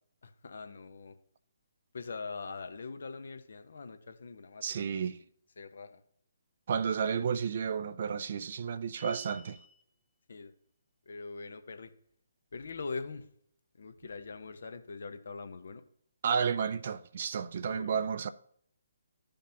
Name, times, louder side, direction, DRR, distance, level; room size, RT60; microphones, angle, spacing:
voice 1, 0.2-1.2 1.9-5.1 5.6-6.0 10.3-10.5 11.1-11.9 12.5-13.3 13.8-15.8 17.6-18.0, left 4 dB, 60° left, 0.9 m, -42 dB
voice 2, 4.6-5.2 6.7-9.6 16.2-18.3, right 6 dB, 45° right, 0.4 m, -32 dB
sound 1, 9.0-9.8, right 5 dB, 20° right, 0.9 m, -48 dB
14.0 x 5.2 x 2.8 m
figure-of-eight pair, 135°, 0 cm